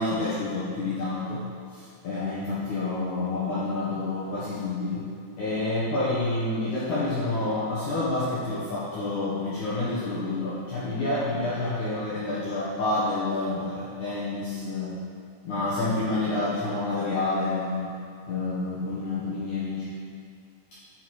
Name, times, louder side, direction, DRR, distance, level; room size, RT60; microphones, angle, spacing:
voice 1, 0.0-1.4 1.7-5.0 5.4-14.9 15.5-17.9 18.3-19.9 20.7-20.8, left 2 dB, 65° left, -10 dB, 1.9 m, -28 dB
11.5 x 4.7 x 4.7 m, 2.4 s
omnidirectional pair, 5.3 m